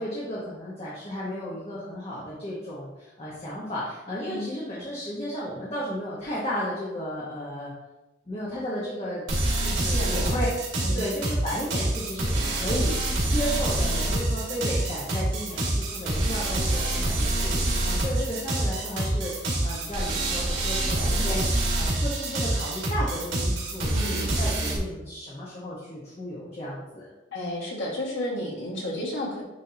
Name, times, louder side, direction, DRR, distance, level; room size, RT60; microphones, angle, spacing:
voice 1, 0.0-7.7 8.3-9.2 9.6-10.5 10.9-27.0, equal, 30° left, -7 dB, 1.2 m, -34 dB
sound 1, 9.3-24.8, right 1 dB, 75° right, 2.0 m, -26 dB
voice 2, 9.8-10.4 10.8-11.0 20.7-21.1 23.9-24.3 27.3-29.4, left 1 dB, 80° left, -4 dB, 1.9 m, -32 dB
9.3 x 3.7 x 2.9 m, 1.0 s
head